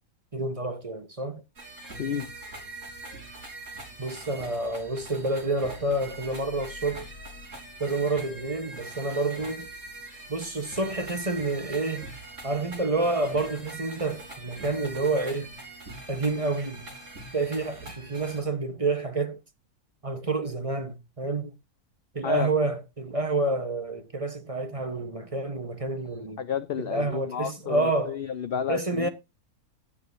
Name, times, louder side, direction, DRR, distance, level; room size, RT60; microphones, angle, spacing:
voice 1, 0.3-1.4 4.0-7.1 7.8-9.7 10.3-12.1 12.4-15.5 16.1-16.9 17.3-19.4 20.0-21.5 22.1-26.4 26.8-28.2 28.7-29.1, right 2 dB, 25° right, 0.9 m, -29 dB
sound 1, 1.6-18.4, right 2 dB, 55° right, 4.0 m, -42 dB
voice 2, 2.0-2.3 22.2-22.5 26.4-29.1, left 8 dB, 60° left, 0.6 m, -30 dB
11.0 x 9.4 x 2.6 m
omnidirectional pair, 1.6 m